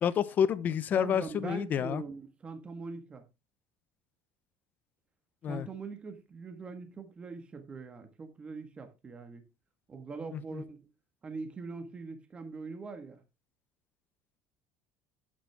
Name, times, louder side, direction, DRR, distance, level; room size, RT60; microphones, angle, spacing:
voice 1, 0.0-2.0 5.4-5.7 10.3-10.6, left 8 dB, 30° left, 0.8 m, -29 dB
voice 2, 1.0-3.2 5.4-9.4 9.9-10.8 11.2-13.2, right 4 dB, 20° right, 1.6 m, -42 dB
11.5 x 8.8 x 3.5 m
cardioid pair, 160°, 6 cm